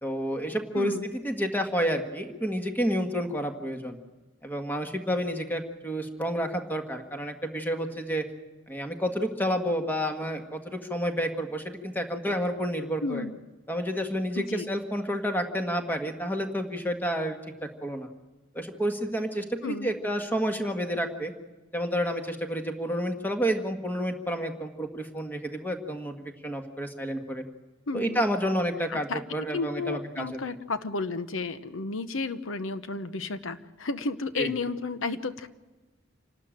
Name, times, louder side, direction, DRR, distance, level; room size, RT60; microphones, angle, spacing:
voice 1, 0.0-4.0 4.4-8.2 8.7-13.2 13.7-18.1 18.5-21.3 21.7-27.4 27.9-30.4 34.4-34.5, equal, 10° left, 4 dB, 1.6 m, -30 dB
voice 2, 0.7-1.1 13.0-13.3 14.3-14.7 19.6-20.0 27.9-28.2 28.9-35.5, left 3 dB, 90° left, 11 dB, 0.9 m, -32 dB
27.5 x 12.5 x 8.9 m, 1.2 s
head